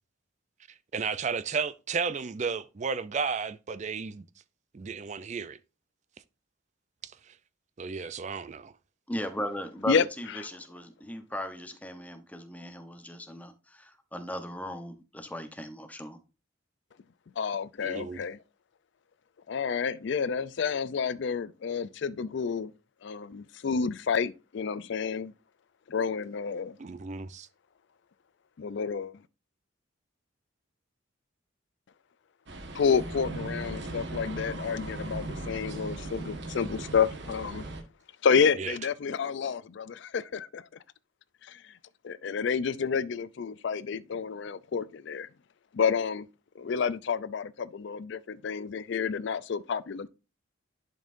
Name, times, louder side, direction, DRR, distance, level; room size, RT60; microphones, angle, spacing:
voice 1, 0.9-4.2 4.7-5.6 7.0-7.3 7.8-8.7 17.8-18.2 26.8-27.5 36.7-36.8 38.6-38.8, right 5 dB, 35° right, 0.4 m, -33 dB
voice 2, 9.1-16.2, equal, 10° left, 0.8 m, -37 dB
voice 3, 9.9-10.4 17.4-18.4 19.5-22.7 23.0-25.3 25.9-26.8 28.6-29.2 32.7-37.6 38.2-40.7 41.4-41.6 42.0-45.3 45.7-46.3 46.6-50.1, left 6 dB, 60° left, 0.4 m, -29 dB
sound 1, 32.5-37.8, right 2 dB, 60° right, 1.3 m, -38 dB
11.0 x 5.4 x 2.6 m
head